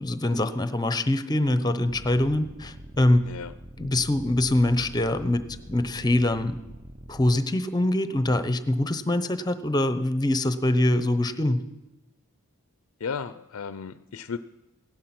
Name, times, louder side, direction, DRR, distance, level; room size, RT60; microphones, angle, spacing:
voice 1, 0.0-3.2 3.8-5.4 5.7-6.6 7.1-11.6, left 1 dB, 20° left, 11 dB, 0.8 m, -24 dB
sound 1, 1.9-7.4, right 1 dB, 30° right, 0.8 m, -44 dB
voice 2, 13.0-14.4, left 5 dB, 65° left, 12 dB, 0.5 m, -34 dB
16.5 x 11.5 x 6.0 m, 1.0 s
head